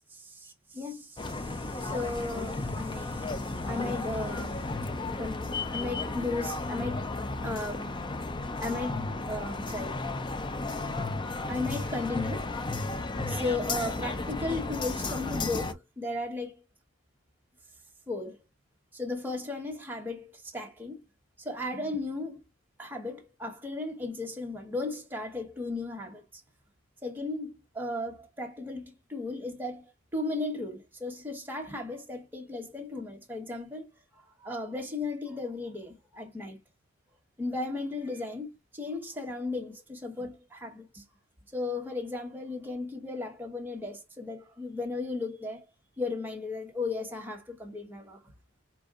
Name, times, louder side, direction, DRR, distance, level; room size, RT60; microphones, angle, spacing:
voice 1, 0.1-4.7 5.2-7.1 7.4-8.0 8.6-10.0 11.5-12.5 13.3-16.6 18.1-18.4 18.9-21.0 21.4-22.5 22.8-26.2 27.0-36.6 37.4-41.0 41.5-45.6 46.0-48.3, left 2 dB, 10° right, 1.1 m, -35 dB
sound 1, 1.2-15.7, left 2 dB, 25° left, 0.4 m, -34 dB
4.4 x 2.6 x 3.5 m
head